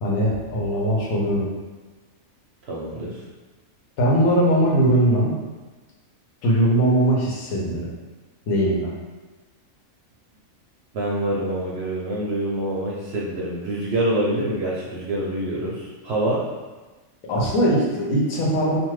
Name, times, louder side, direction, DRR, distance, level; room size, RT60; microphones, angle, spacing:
voice 1, 0.0-1.5 4.0-5.3 6.4-7.9 8.5-8.9 17.3-18.8, right 1 dB, 85° left, -4 dB, 1.2 m, -20 dB
voice 2, 2.7-3.2 10.9-16.4, right 1 dB, 65° right, -5 dB, 0.7 m, -26 dB
2.6 x 2.5 x 3.1 m, 1.3 s
omnidirectional pair, 1.4 m